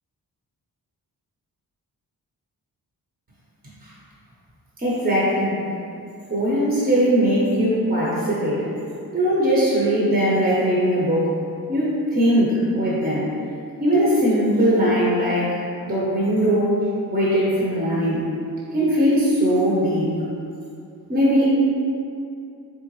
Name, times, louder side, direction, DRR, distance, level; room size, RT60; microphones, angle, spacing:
voice 1, 4.8-5.7 6.3-8.7 9.1-11.4 11.7-13.3 13.8-15.6 15.8-18.2 18.7-20.2 21.1-21.5, equal, 25° right, -7 dB, 0.7 m, -20 dB
3.7 x 3.4 x 3.0 m, 2.5 s
wide cardioid pair, 120°, 38 cm